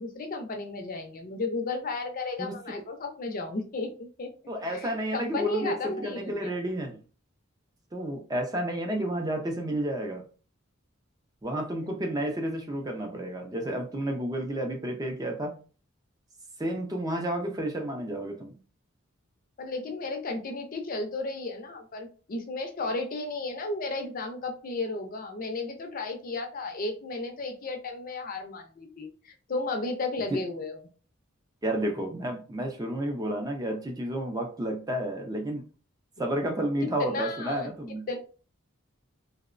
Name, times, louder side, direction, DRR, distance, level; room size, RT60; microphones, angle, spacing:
voice 1, 0.0-4.3 4.7-6.6 19.6-30.8 37.0-37.7 38.1-38.2, left 3 dB, 45° left, 0.5 m, -34 dB
voice 2, 2.4-2.8 4.5-7.0 7.9-10.2 11.4-15.6 16.6-18.5 30.3-30.4 31.6-35.7 36.2-38.1, right 1 dB, 20° right, 0.4 m, -31 dB
2.8 x 2.0 x 2.4 m
head